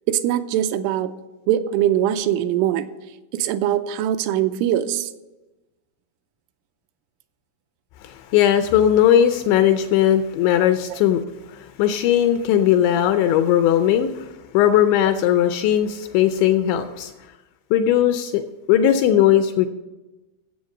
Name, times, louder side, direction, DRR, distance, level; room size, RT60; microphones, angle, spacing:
voice 1, 0.1-1.1 1.5-2.9 3.3-5.1, right 11 dB, 85° right, 9 dB, 3.0 m, -22 dB
voice 2, 8.0-11.2 11.5-14.3 14.5-17.1 17.7-18.4 18.7-19.7, left 10 dB, 80° left, 8 dB, 2.7 m, -18 dB
14.0 x 7.9 x 6.4 m, 1.1 s
omnidirectional pair, 5.7 m